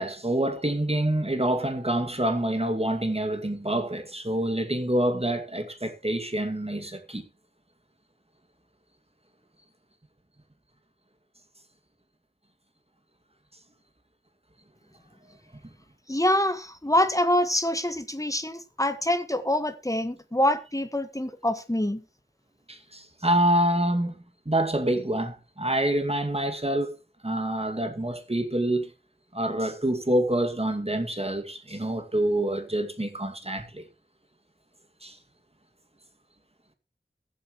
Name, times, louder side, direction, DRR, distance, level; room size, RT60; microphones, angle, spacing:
voice 1, 0.0-7.3 22.7-24.2 24.5-27.0 27.2-28.9 29.3-33.8 35.0-35.2, right 1 dB, 30° right, 2.2 m, -26 dB
voice 2, 16.1-22.0, left 1 dB, 15° left, 1.6 m, -25 dB
20.5 x 8.0 x 3.1 m
wide cardioid pair, 40°, 20 cm